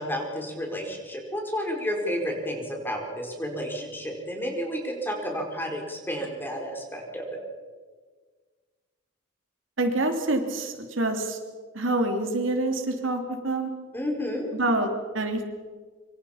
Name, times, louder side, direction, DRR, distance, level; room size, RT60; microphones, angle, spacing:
voice 1, 0.0-7.4 13.9-14.5, equal, 10° left, 2 dB, 4.7 m, -31 dB
voice 2, 9.8-11.4 11.7-13.7 14.5-15.4, right 2 dB, 70° right, 5 dB, 3.1 m, -26 dB
25.5 x 25.0 x 5.8 m, 1.5 s
head